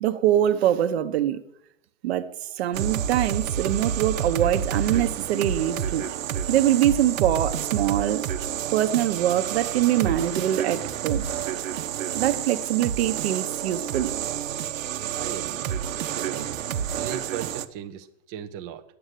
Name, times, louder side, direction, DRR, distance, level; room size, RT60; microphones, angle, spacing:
voice 1, 0.0-1.4 2.0-6.1 6.5-8.2 8.7-11.3 12.1-14.1, right 12 dB, 55° right, 0.9 m, -23 dB
sound 1, 2.7-17.7, right 9 dB, 90° right, 1.0 m, -29 dB
voice 2, 15.1-15.7 16.1-16.5 16.9-18.8, right 9 dB, 15° right, 0.4 m, -37 dB
10.0 x 7.9 x 9.1 m
supercardioid pair, 160°, 38 cm